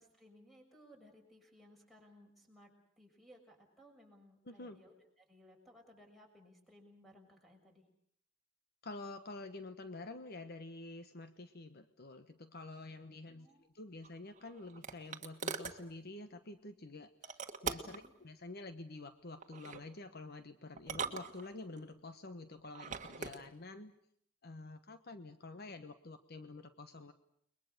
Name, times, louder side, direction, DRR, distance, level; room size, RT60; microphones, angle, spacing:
voice 1, 0.0-7.9 13.3-13.7 17.8-18.1, equal, ahead, 2 dB, 6.5 m, -61 dB
voice 2, 4.5-4.8 8.8-23.9 24.4-27.1, left 2 dB, 55° left, 9 dB, 1.2 m, -48 dB
sound 1, 14.0-15.8 17.2-18.1 19.4-19.8 20.8-21.8 22.6-23.4, right 5 dB, 40° right, 1.7 m, -42 dB
30.0 x 22.0 x 6.7 m, 0.68 s
head